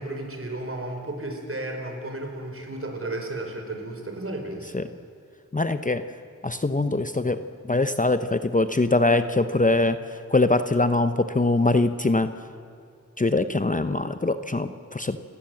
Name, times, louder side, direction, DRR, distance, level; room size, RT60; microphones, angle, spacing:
voice 1, 0.0-4.7, right 2 dB, 45° right, 3 dB, 4.6 m, -33 dB
voice 2, 5.5-6.1 6.4-12.3 13.2-15.2, left 2 dB, 25° left, 10 dB, 0.8 m, -23 dB
29.5 x 17.5 x 7.7 m, 2.5 s
wide cardioid pair, 70°, 31 cm